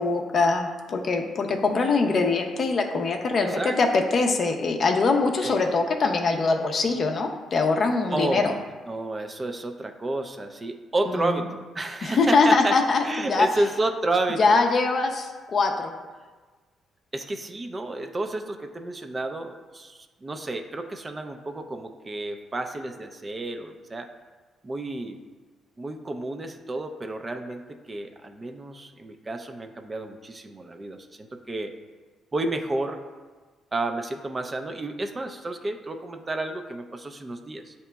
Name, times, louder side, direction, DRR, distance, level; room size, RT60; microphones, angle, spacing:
voice 1, 0.0-8.5 11.1-11.4 12.0-13.5 14.4-15.9, left 4 dB, 50° left, 3 dB, 0.5 m, -23 dB
voice 2, 3.4-3.8 5.4-5.6 8.1-8.6 8.9-12.8 13.0-14.6 17.1-24.1 24.6-25.2 25.8-31.7 32.3-33.0 33.7-37.7, right 2 dB, 25° right, 6 dB, 0.4 m, -31 dB
8.0 x 2.9 x 2.2 m, 1.3 s
cardioid pair, 90°, 0 cm